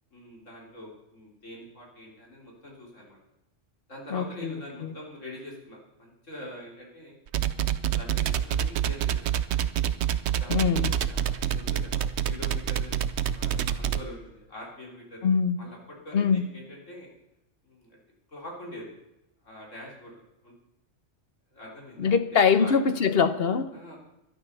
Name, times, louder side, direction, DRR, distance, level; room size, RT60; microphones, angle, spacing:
voice 1, 0.1-3.2 3.9-7.2 7.7-9.2 10.4-13.0 13.3-15.3 15.6-15.8 16.0-17.1 17.6-18.0 18.3-18.9 19.4-20.5 21.5-22.1 22.6-23.1 23.7-24.0, left 1 dB, 90° left, -1 dB, 4.1 m, -44 dB
voice 2, 4.1-4.9 10.5-10.9 15.2-15.6 16.1-16.5 22.0-23.7, left 6 dB, 55° left, 11 dB, 1.1 m, -23 dB
sound 1, 7.3-14.0, right 9 dB, 65° right, 1.0 m, -26 dB
12.5 x 11.0 x 6.8 m, 0.89 s
omnidirectional pair, 1.3 m